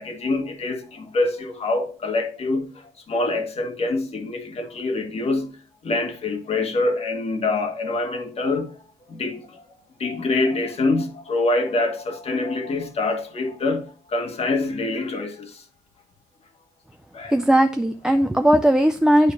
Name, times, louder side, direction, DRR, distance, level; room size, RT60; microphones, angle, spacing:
voice 1, 0.0-5.6 5.8-8.7 9.1-9.6 10.0-15.6 17.1-17.4, left 2 dB, 35° left, 1.5 m, -25 dB
voice 2, 17.3-19.3, right 1 dB, 5° right, 0.4 m, -18 dB
9.2 x 4.6 x 2.6 m
cardioid pair, 110°, 17 cm